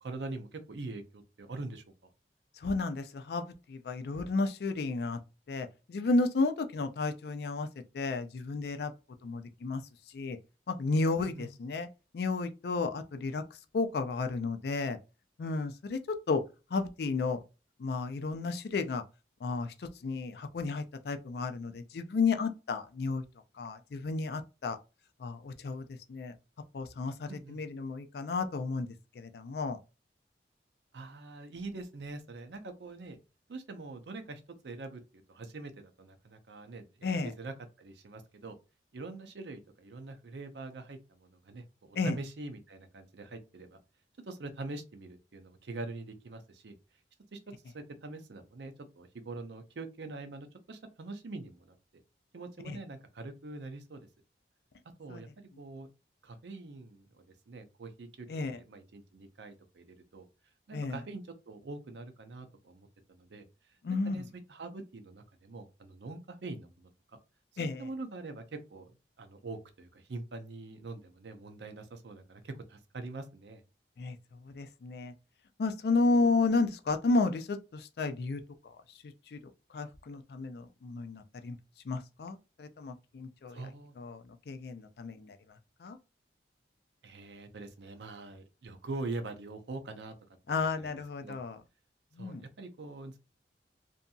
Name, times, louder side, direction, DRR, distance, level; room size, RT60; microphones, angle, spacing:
voice 1, 0.0-1.8 11.2-11.5 27.3-27.6 30.9-33.2 33.5-35.0 35.3-38.5 38.9-43.8 44.2-46.7 47.3-47.4 47.7-51.7 52.3-54.1 55.0-55.9 56.2-60.3 60.7-63.4 63.7-64.2 64.5-66.9 67.6-73.6 83.5-84.0 87.0-90.1 90.5-91.4 92.2-93.2, right 3 dB, 75° right, 0.5 m, -44 dB
voice 2, 2.6-5.2 5.5-7.7 7.9-8.9 9.2-9.8 10.1-10.4 10.7-11.3 11.6-11.9 12.1-13.4 13.7-15.0 15.4-16.4 16.7-17.4 17.8-19.0 19.4-23.2 23.6-24.8 25.2-26.3 26.7-29.8 37.0-37.3 42.0-42.2 52.7-52.8 55.1-55.2 58.3-58.6 60.7-61.0 63.8-64.2 67.6-67.8 74.0-74.2 74.4-75.1 75.6-78.4 79.3-79.4 79.7-81.6 81.9-83.6 84.0-85.4 85.8-86.0 90.5-91.6 92.2-92.4, left 3 dB, 60° left, 0.4 m, -32 dB
2.7 x 2.6 x 2.3 m
head